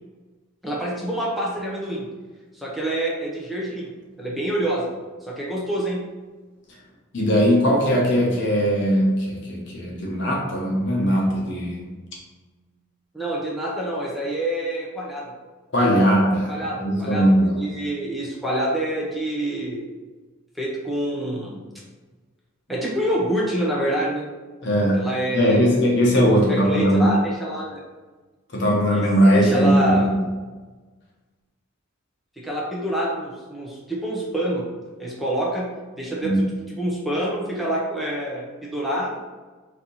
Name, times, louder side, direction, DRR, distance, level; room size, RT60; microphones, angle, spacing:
voice 1, 0.6-2.1 2.5-3.9 4.2-4.9 5.2-6.0 13.1-15.2 16.5-19.9 20.6-21.6 22.7-24.3 25.0-25.8 26.5-27.8 28.9-29.0 29.3-30.1 32.4-34.7 35.0-35.7 36.0-39.2, right 1 dB, ahead, -5 dB, 0.7 m, -26 dB
voice 2, 7.1-11.9 15.7-17.6 24.6-25.0 25.3-27.1 28.5-30.2 36.2-36.4, equal, 55° left, -2 dB, 0.9 m, -19 dB
4.3 x 2.7 x 3.9 m, 1.3 s
head